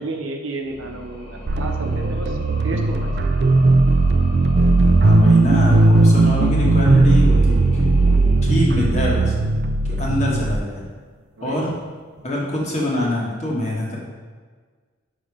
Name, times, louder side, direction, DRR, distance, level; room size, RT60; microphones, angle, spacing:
voice 1, 0.0-2.4 2.6-3.1 9.9-10.0 11.4-11.7, right 2 dB, 85° right, 3 dB, 0.8 m, -31 dB
sound 1, 0.5-9.6, equal, 55° left, 2.0 m, -37 dB
sound 2, 1.5-10.6, right 2 dB, 55° right, 0.4 m, -16 dB
voice 2, 5.0-9.3 9.9-10.8 11.4-11.7 12.2-14.0, left 1 dB, 35° left, -4 dB, 1.5 m, -24 dB
5.5 x 5.1 x 5.0 m, 1.5 s
head